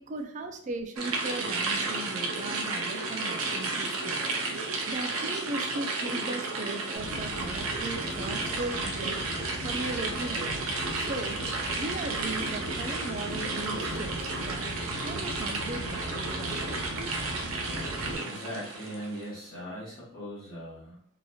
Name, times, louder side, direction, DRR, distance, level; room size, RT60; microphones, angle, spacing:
voice 1, 0.0-4.2 4.8-9.2 9.6-11.4 11.8-14.7 15.0-16.6, right 2 dB, 35° right, 6 dB, 0.3 m, -37 dB
sound 1, 1.0-19.2, right 3 dB, 90° right, 0.6 m, -32 dB
sound 2, 7.0-18.1, left 1 dB, 75° left, 1.2 m, -39 dB
voice 2, 17.7-21.1, equal, 45° left, -10 dB, 1.0 m, -40 dB
2.8 x 2.8 x 2.3 m, 0.68 s
head